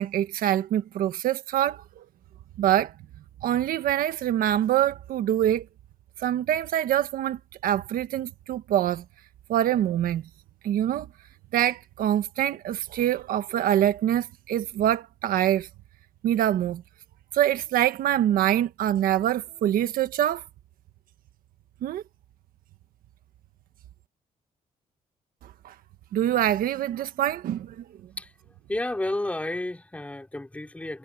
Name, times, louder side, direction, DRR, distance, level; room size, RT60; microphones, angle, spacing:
voice 1, 0.0-2.0 2.6-2.9 3.4-5.7 6.2-9.0 9.5-10.2 10.6-11.1 11.5-15.7 16.2-16.8 17.3-20.4 21.8-22.0 25.6-25.7 26.1-27.8, right 11 dB, 85° right, 1.5 m, -25 dB
voice 2, 28.7-31.0, left 1 dB, 10° left, 3.8 m, -31 dB
cardioid pair, 130°, 15 cm